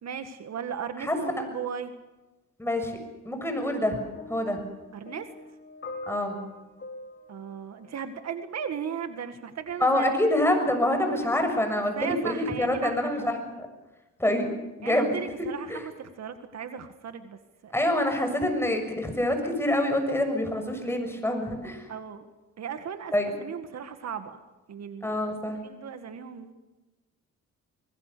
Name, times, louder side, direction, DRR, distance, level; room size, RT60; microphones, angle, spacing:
voice 1, 0.0-1.9 4.9-5.3 7.3-10.4 12.0-13.3 14.8-17.8 21.9-22.3 22.6-23.1 23.4-24.4 24.7-25.3 25.6-26.5, right 7 dB, 60° right, 8 dB, 2.0 m, -36 dB
voice 2, 2.6-3.0 3.2-4.0 4.3-4.6 6.1-6.4 9.8-13.4 14.2-14.5 14.8-15.1 15.7-15.9 17.7-21.9 23.1-23.3 25.0-25.6, left 1 dB, 10° left, 4 dB, 6.8 m, -26 dB
sound 1, 3.6-8.7 9.6-9.7, left 2 dB, 40° left, 5.1 m, -44 dB
25.0 x 21.0 x 6.9 m, 1.1 s
cardioid pair, 90°, 30 cm